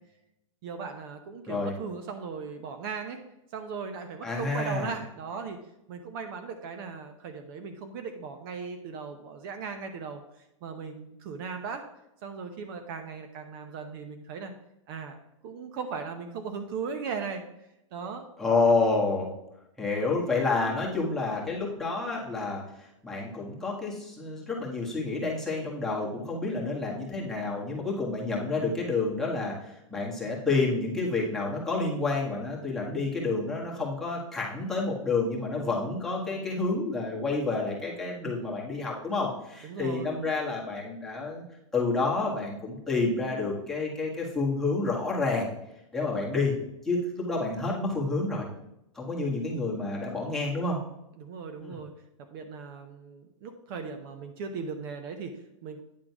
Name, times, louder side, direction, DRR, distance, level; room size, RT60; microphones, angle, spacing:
voice 1, 0.6-3.2 3.5-5.6 5.9-11.9 12.2-14.5 14.9-15.2 15.4-17.4 17.9-18.3 36.1-36.6 39.6-40.1 49.3-49.5 51.2-51.9 52.2-55.8, right 5 dB, 45° right, 6 dB, 0.8 m, -38 dB
voice 2, 4.2-4.9 18.4-19.3 19.8-41.4 41.7-45.5 45.9-46.5 46.8-48.5 48.9-50.8 51.6-51.7, left 3 dB, ahead, -5 dB, 1.6 m, -29 dB
9.4 x 3.8 x 6.0 m, 0.85 s
supercardioid pair, 155°, 17 cm